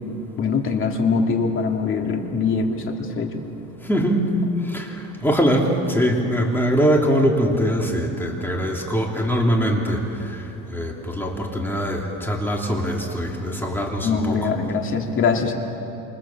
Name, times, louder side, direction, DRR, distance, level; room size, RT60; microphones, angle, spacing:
voice 1, 0.4-3.4 14.0-15.5, left 5 dB, 40° left, 2 dB, 2.7 m, -22 dB
voice 2, 3.8-4.3 4.7-10.0 10.7-14.5, equal, 5° left, 0 dB, 3.2 m, -22 dB
27.5 x 26.5 x 7.4 m, 3.0 s
cardioid pair, 135°, 31 cm